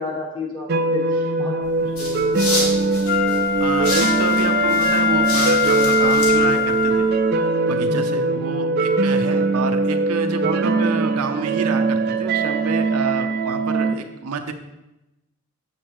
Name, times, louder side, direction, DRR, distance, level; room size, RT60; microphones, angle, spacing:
voice 1, 0.0-1.5 1.8-2.5 7.9-8.2, left 2 dB, 20° left, -2 dB, 1.4 m, -31 dB
sound 1, 0.7-13.9, right 3 dB, 45° right, 0.4 m, -21 dB
sound 2, 1.6-7.1, left 1 dB, 80° left, 2.2 m, -30 dB
Wind instrument woodwind instrument, 3.0-7.3 7.8-7.9, left 7 dB, 50° left, 0.5 m, -22 dB
voice 2, 3.6-7.4 7.7-14.5, right 4 dB, 85° right, 6 dB, 0.6 m, -29 dB
7.9 x 6.5 x 3.0 m, 0.96 s
head